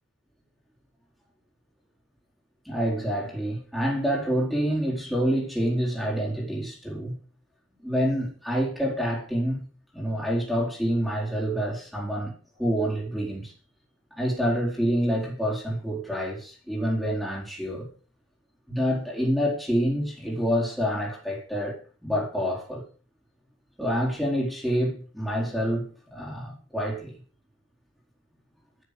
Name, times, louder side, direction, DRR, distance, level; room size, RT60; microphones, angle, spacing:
voice 1, 2.6-7.1 7.8-9.7 9.9-12.3 12.6-13.5 14.1-17.9 18.7-21.8 22.0-22.8 23.8-27.1, equal, ahead, 4.5 m, -27 dB
11.5 x 11.5 x 6.8 m
head